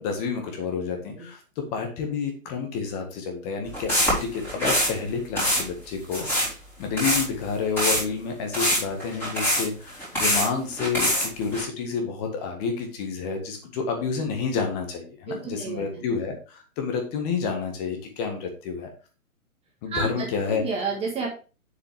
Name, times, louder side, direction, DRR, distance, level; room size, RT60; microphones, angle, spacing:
voice 1, 0.0-6.5 6.8-18.9 19.8-20.6, left 5 dB, 25° left, 3 dB, 1.8 m, -29 dB
sound 1, 3.7-5.0 5.4-5.6 6.1-6.5 7.0-7.2 7.8-8.0 8.5-10.5 10.8-11.6, equal, 5° left, 3.6 m, -24 dB
voice 2, 15.3-16.0 19.9-21.3, right 4 dB, 15° right, 0 dB, 1.8 m, -31 dB
7.6 x 6.8 x 3.5 m, 0.34 s
hypercardioid pair, 145°, 43 cm